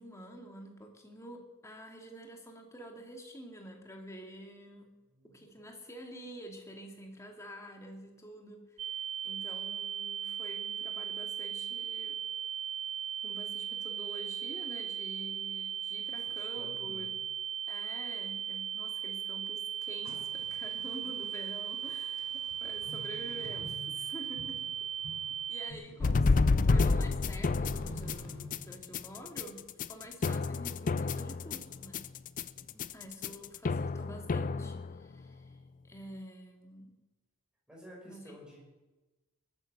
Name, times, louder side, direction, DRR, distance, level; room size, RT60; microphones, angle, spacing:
voice 1, 0.0-4.9 5.2-8.9 9.2-12.2 13.2-17.2 17.7-24.6 25.5-26.2 26.6-32.0 32.9-35.6 35.8-36.9 38.1-38.2, equal, 15° left, 2 dB, 2.2 m, -48 dB
voice 2, 5.1-5.7 16.3-17.2 25.8-25.9 32.5-33.0 37.7-38.6, equal, 5° right, -3 dB, 5.6 m, -53 dB
sound 1, 8.8-25.7, right 9 dB, 30° right, 0.5 m, -37 dB
sound 2, 19.9-28.5, equal, 75° left, 5.1 m, -50 dB
sound 3, 26.0-35.2, left 3 dB, 40° left, 0.4 m, -30 dB
20.5 x 9.4 x 6.6 m, 1.1 s
head